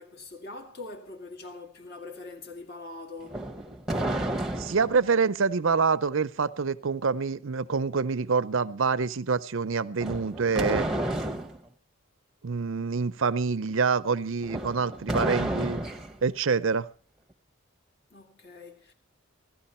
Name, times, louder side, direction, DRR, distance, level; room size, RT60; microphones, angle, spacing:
voice 1, 0.0-3.4 18.1-18.9, left 3 dB, 45° left, 2.1 m, -43 dB
sound 1, 3.2-5.0 10.0-11.6 14.4-16.2, right 1 dB, ahead, 1.0 m, -31 dB
voice 2, 4.6-10.9 12.4-15.8 16.2-16.9, right 5 dB, 65° right, 0.6 m, -26 dB
17.0 x 14.0 x 4.3 m
head